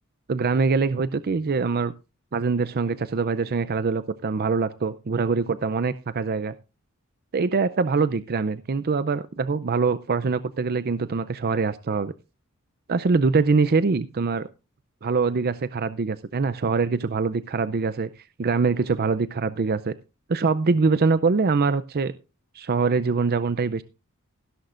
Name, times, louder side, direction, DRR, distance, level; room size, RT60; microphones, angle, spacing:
voice 1, 0.3-1.9 2.3-6.5 7.3-12.1 12.9-14.5 15.0-18.1 18.4-19.9 20.3-22.1 22.5-23.8, right 4 dB, 45° right, 0.5 m, -23 dB
15.5 x 13.0 x 2.5 m
head